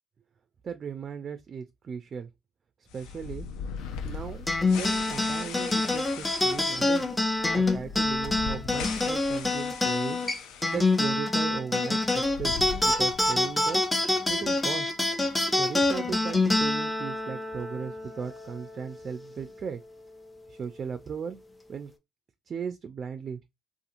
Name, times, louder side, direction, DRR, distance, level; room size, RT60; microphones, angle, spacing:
voice 1, 0.6-2.3 2.9-3.5 4.0-7.1 7.5-10.2 10.7-13.8 14.3-14.9 15.5-19.8 20.5-21.4 21.7-21.9 22.5-23.4, right 6 dB, 50° right, 0.3 m, -37 dB
sound 1, 2.9-11.1 11.4-11.5 12.1-13.5, left 6 dB, 75° left, 0.4 m, -39 dB
sound 2, 4.5-19.2, left 2 dB, 15° left, 0.6 m, -26 dB
2.8 x 2.4 x 2.4 m
hypercardioid pair, 55°, 0 cm